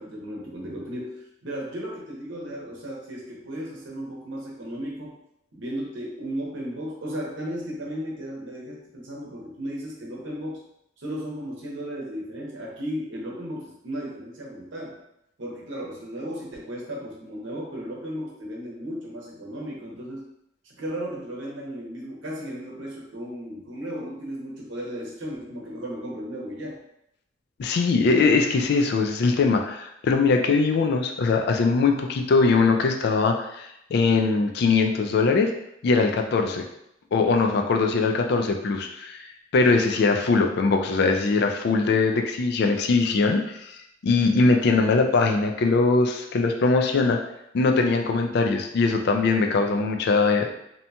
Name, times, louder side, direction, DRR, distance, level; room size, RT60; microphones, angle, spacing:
voice 1, 0.0-5.2 5.5-10.6 11.0-15.0 15.4-20.2 20.6-26.8 36.2-36.4 44.3-44.8, equal, 75° right, -3 dB, 0.8 m, -35 dB
voice 2, 27.6-35.5 35.8-36.6 37.1-39.3 39.5-47.2 47.5-50.5, left 4 dB, 55° left, 4 dB, 0.3 m, -21 dB
2.7 x 2.2 x 2.7 m, 0.80 s
head